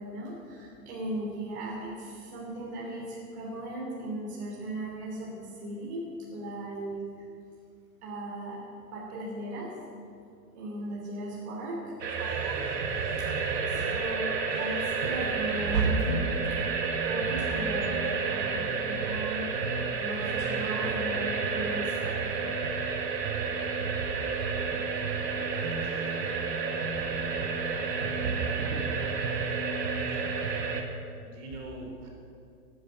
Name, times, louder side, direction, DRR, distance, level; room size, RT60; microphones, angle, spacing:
voice 1, 0.0-6.0 6.3-7.0 8.0-8.6 8.9-9.7 10.5-12.5 13.7-16.2 16.5-16.7 17.0-19.5 20.0-22.1, right 1 dB, 40° right, -5 dB, 3.3 m, -37 dB
sound 1, 12.0-30.8, right 5 dB, 85° right, 2.1 m, -30 dB
voice 2, 25.6-26.2 27.9-28.9 31.2-32.1, right 2 dB, 65° right, -1 dB, 4.3 m, -46 dB
12.5 x 10.5 x 7.7 m, 2.4 s
hypercardioid pair, 165°, 48 cm